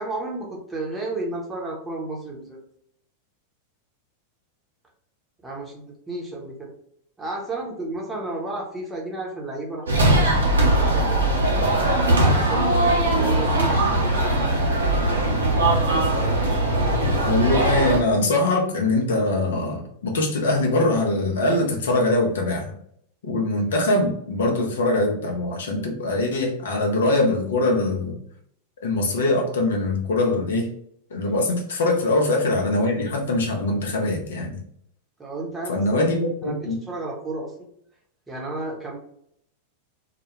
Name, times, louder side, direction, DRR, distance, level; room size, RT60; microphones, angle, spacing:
voice 1, 0.0-2.6 5.4-6.7 7.2-10.3 10.6-11.2 12.1-13.8 14.2-14.3 31.9-32.0 35.2-36.0 36.4-37.5 38.3-39.0, right 2 dB, 10° right, -2 dB, 0.8 m, -32 dB
sound 1, 9.9-18.0, right 1 dB, 70° right, 0.6 m, -20 dB
voice 2, 17.2-22.7 23.2-28.1 28.8-30.7 31.1-34.6 35.7-36.8, left 2 dB, 65° left, 1 dB, 0.5 m, -22 dB
2.2 x 2.1 x 3.0 m, 0.68 s
figure-of-eight pair, 90°, 0 cm